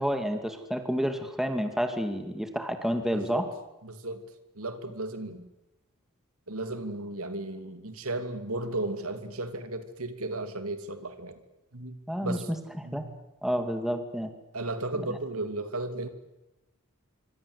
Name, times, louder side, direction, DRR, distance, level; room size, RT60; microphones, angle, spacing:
voice 1, 0.0-3.4 12.1-12.4 12.8-13.0 13.4-14.3 14.9-15.1, equal, ahead, 7 dB, 2.3 m, -29 dB
voice 2, 3.1-3.4 3.8-4.2 4.6-5.5 6.5-11.4 11.7-12.0 12.2-12.5 12.8-13.2 14.5-16.1, right 2 dB, 70° right, 9 dB, 2.9 m, -34 dB
26.0 x 24.5 x 8.2 m, 0.98 s
head